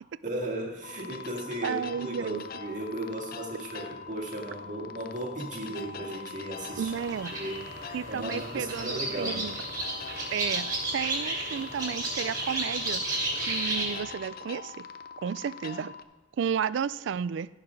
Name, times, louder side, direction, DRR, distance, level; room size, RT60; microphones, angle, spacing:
voice 1, 0.2-6.9 7.3-7.6 8.1-9.5, right 1 dB, 40° right, -1 dB, 2.0 m, -36 dB
sound 1, 0.8-16.0, left 6 dB, 50° left, 0.5 m, -43 dB
voice 2, 1.6-2.4 6.8-7.3 7.9-9.6 10.3-13.0 13.4-14.8 15.2-15.9 16.4-17.5, right 7 dB, 65° right, 18 dB, 0.3 m, -32 dB
sound 2, 6.5-14.0, right 1 dB, 20° right, 3.2 m, -33 dB
15.0 x 5.8 x 5.2 m, 1.2 s
head